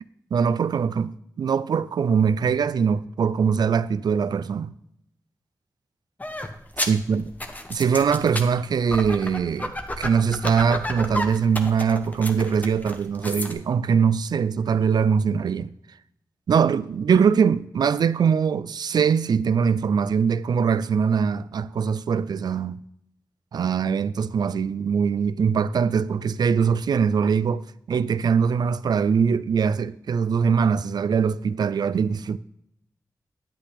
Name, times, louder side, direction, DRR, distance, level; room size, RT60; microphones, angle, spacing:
voice 1, 0.3-4.7 6.8-7.2 7.7-15.7 16.5-22.8 23.5-32.4, right 6 dB, 85° right, 0.3 m, -22 dB
sound 1, 6.2-13.5, left 1 dB, 25° left, 1.0 m, -32 dB
10.0 x 8.4 x 3.4 m
wide cardioid pair, 75°, 7 cm